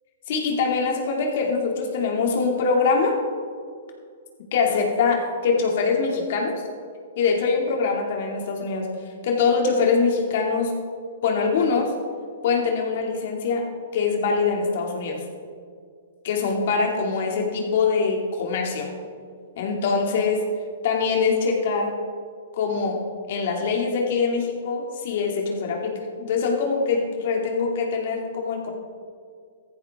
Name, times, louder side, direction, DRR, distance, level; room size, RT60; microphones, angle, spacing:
voice 1, 0.3-3.2 4.5-6.5 7.2-8.9 9.2-10.7 11.2-11.9 12.4-13.7 13.9-15.2 16.2-18.9 19.6-20.5 20.8-22.0 22.5-28.7, left 4 dB, 55° left, 1 dB, 2.7 m, -23 dB
16.0 x 14.0 x 3.7 m, 2.1 s
hypercardioid pair, 120°, 0 cm